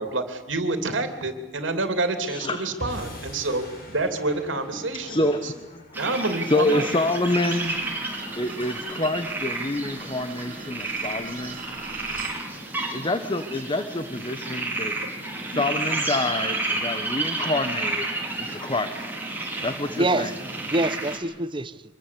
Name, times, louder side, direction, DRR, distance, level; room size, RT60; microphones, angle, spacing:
voice 1, 0.0-5.5 5.9-6.9 15.5-15.6, right 2 dB, 80° right, 3.0 m, -28 dB
voice 2, 2.2-2.6 4.9-5.8 6.4-7.7 8.4-11.6 12.9-18.1 18.4-19.2 19.6-20.3, left 2 dB, 25° left, 1.2 m, -27 dB
sound 1, 2.8-9.2, left 1 dB, 50° left, 5.5 m, -44 dB
sound 2, 5.9-21.2, right 2 dB, 10° right, 4.8 m, -31 dB
sound 3, 7.4-12.4, right 6 dB, 45° right, 2.3 m, -42 dB
voice 3, 20.0-21.9, right 2 dB, 25° right, 0.9 m, -26 dB
25.5 x 22.0 x 8.5 m
head